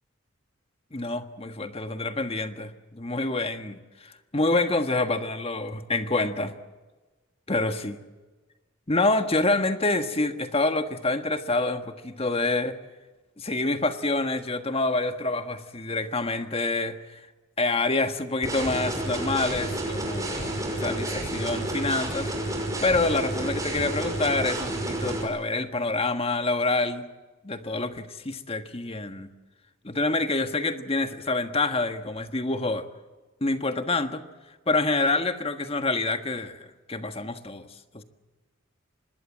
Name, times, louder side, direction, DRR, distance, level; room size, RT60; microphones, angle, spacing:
voice 1, 0.9-6.5 7.5-8.0 8.9-12.8 13.4-17.2 17.6-27.0 27.4-29.3 29.8-32.8 33.4-34.2 34.7-37.7 37.9-38.0, left 2 dB, 30° left, 8 dB, 1.5 m, -27 dB
sound 1, 18.4-25.2, right 1 dB, 15° right, 5.7 m, -30 dB
25.5 x 21.0 x 7.4 m, 1.2 s
head